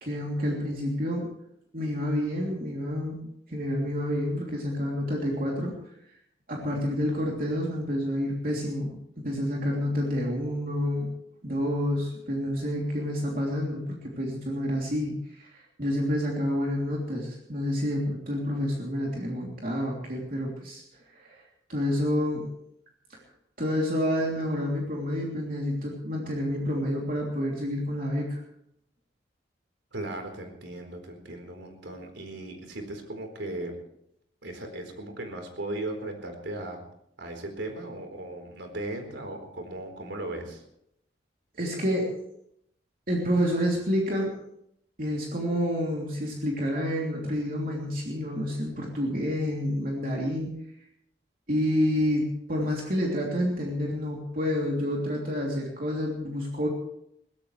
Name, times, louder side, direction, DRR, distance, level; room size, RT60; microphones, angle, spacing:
voice 1, 0.0-1.3 1.7-3.2 3.5-5.9 6.5-11.1 11.4-20.8 21.1-21.4 21.7-22.5 23.1-23.2 23.6-28.4 41.6-42.1 43.1-44.3 45.0-50.5 51.5-56.7, equal, 50° right, -2 dB, 3.2 m, -29 dB
voice 2, 29.9-33.8 34.4-36.8 37.2-40.6, right 1 dB, 85° right, 4 dB, 4.2 m, -37 dB
22.5 x 17.0 x 3.3 m, 0.74 s
head